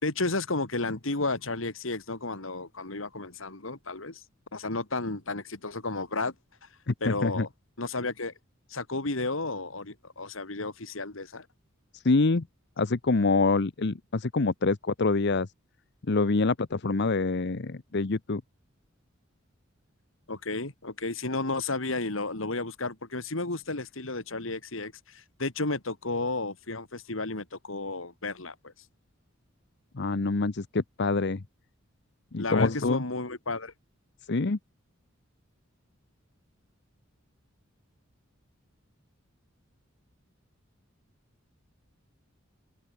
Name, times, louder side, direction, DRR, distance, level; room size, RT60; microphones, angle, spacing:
voice 1, 0.0-4.2 4.5-6.3 7.0-7.5 7.8-8.3 8.7-11.5 20.3-28.7 32.4-33.7, left 3 dB, 80° left, 2.7 m, -32 dB
voice 2, 6.9-7.5 11.9-12.4 12.8-15.5 16.1-18.4 30.0-31.4 32.3-33.0 34.3-34.6, left 3 dB, 55° left, 0.8 m, -26 dB
open air
head